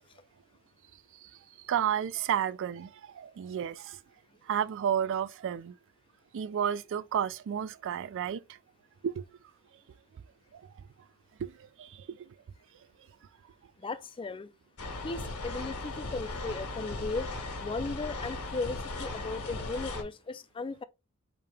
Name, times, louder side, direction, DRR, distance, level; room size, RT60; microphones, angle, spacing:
voice 1, 1.7-4.0 4.5-5.8 6.3-8.4 9.0-9.2 10.5-10.6 11.4-11.5 11.8-12.3, right 9 dB, 60° right, 0.3 m, -31 dB
voice 2, 13.8-14.5 15.0-17.3 17.6-20.8, left 3 dB, 25° left, 0.4 m, -36 dB
sound 1, 14.8-20.0, left 2 dB, 75° left, 1.4 m, -37 dB
5.0 x 2.8 x 3.4 m
head